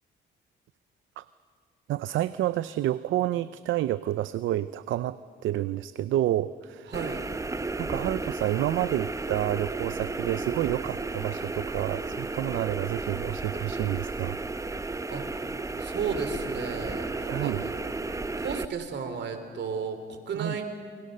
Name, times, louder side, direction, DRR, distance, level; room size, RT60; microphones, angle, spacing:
voice 1, 1.9-6.9 7.8-14.4 17.3-17.6 20.3-20.6, right 14 dB, 75° right, 15 dB, 0.6 m, -29 dB
sound 1, 6.9-18.6, right 3 dB, 15° right, 0.8 m, -33 dB
voice 2, 6.9-7.2 15.1-15.3 15.8-17.7 18.4-20.7, right 6 dB, 60° right, 7 dB, 3.5 m, -33 dB
28.5 x 23.5 x 6.6 m, 2.1 s
cardioid pair, 90°, 20 cm